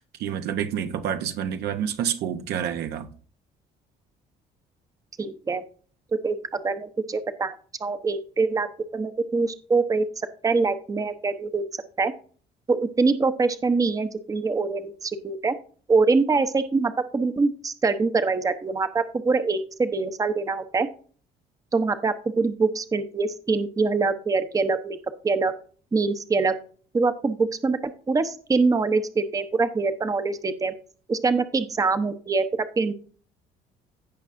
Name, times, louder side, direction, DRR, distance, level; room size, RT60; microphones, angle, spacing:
voice 1, 0.0-3.1, right 9 dB, 75° right, 0.9 m, -28 dB
voice 2, 5.2-5.6 6.1-7.5 7.8-10.1 10.4-11.6 12.0-12.1 12.7-15.5 15.9-20.9 21.7-25.0 25.2-25.6 25.9-26.6 26.9-30.7 31.1-32.5 32.8-32.9, right 4 dB, 20° right, 0.8 m, -24 dB
15.5 x 5.4 x 2.6 m
cardioid pair, 110°, 17 cm